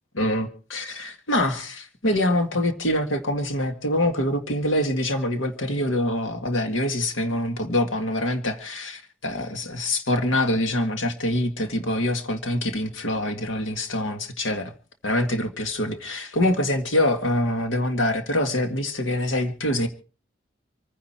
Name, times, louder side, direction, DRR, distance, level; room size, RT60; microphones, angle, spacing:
voice 1, 0.1-14.7 15.0-19.9, left 1 dB, 85° left, 1.9 m, -25 dB
26.5 x 10.0 x 4.5 m
head